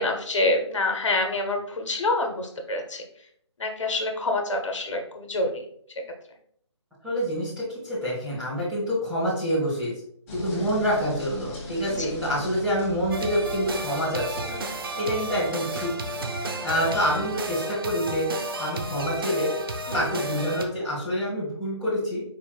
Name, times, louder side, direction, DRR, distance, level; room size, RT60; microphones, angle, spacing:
voice 1, 0.0-3.0 3.6-5.6 10.5-10.6 11.9-12.1 19.9-20.0, left 2 dB, 80° left, 3 dB, 1.1 m, -27 dB
voice 2, 7.0-9.9 10.3-14.4 15.0-16.2 16.6-19.5 19.9-22.2, equal, 5° right, -12 dB, 1.1 m, -27 dB
sound 1, 10.3-15.8, left 1 dB, 30° left, 1.3 m, -39 dB
sound 2, 13.1-20.6, right 1 dB, 50° right, 0.5 m, -32 dB
4.5 x 3.4 x 2.3 m, 0.65 s
hypercardioid pair, 165°, 15 cm